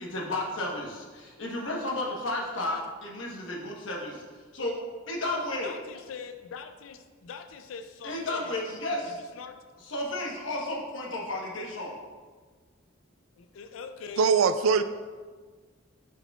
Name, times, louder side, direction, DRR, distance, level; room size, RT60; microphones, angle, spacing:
voice 1, 0.0-4.8 5.1-5.7 8.0-9.2 9.9-12.0, left 1 dB, 70° left, -1 dB, 1.1 m, -33 dB
voice 2, 5.6-8.6 9.1-9.6 13.4-14.3, left 6 dB, 85° left, 8 dB, 0.4 m, -43 dB
voice 3, 14.2-14.8, right 5 dB, 90° right, 11 dB, 0.4 m, -21 dB
8.8 x 4.7 x 2.3 m, 1.5 s
head